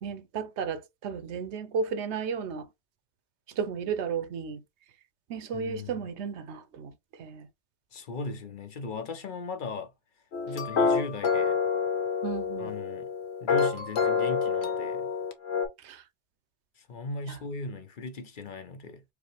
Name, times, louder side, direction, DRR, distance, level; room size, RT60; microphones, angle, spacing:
voice 1, 0.0-2.7 3.5-4.6 5.3-6.9 7.2-7.5 12.2-12.8 15.8-16.0 17.3-17.4, right 6 dB, 85° right, 0.9 m, -34 dB
voice 2, 5.5-6.0 7.9-9.9 10.5-11.6 12.6-13.1 13.4-15.1 16.8-19.0, left 3 dB, 55° left, 0.7 m, -38 dB
sound 1, 10.3-15.7, left 5 dB, 75° left, 1.1 m, -27 dB
4.9 x 2.1 x 3.2 m
omnidirectional pair, 1.1 m